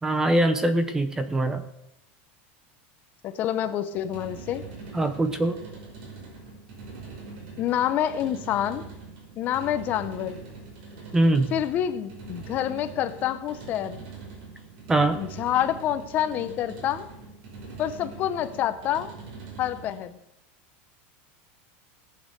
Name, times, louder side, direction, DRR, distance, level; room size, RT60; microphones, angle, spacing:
voice 1, 0.0-1.6 4.9-5.6 11.1-11.5 14.9-15.2, right 1 dB, 10° right, 11 dB, 0.7 m, -22 dB
voice 2, 3.2-4.6 7.6-8.8 9.4-10.3 11.5-14.0 15.2-17.1 17.8-19.1 19.6-20.2, left 11 dB, 30° left, 11 dB, 0.8 m, -27 dB
sound 1, 3.9-20.1, right 4 dB, 55° right, 5.1 m, -43 dB
17.5 x 8.7 x 6.7 m, 0.83 s
supercardioid pair, 180°, 6 cm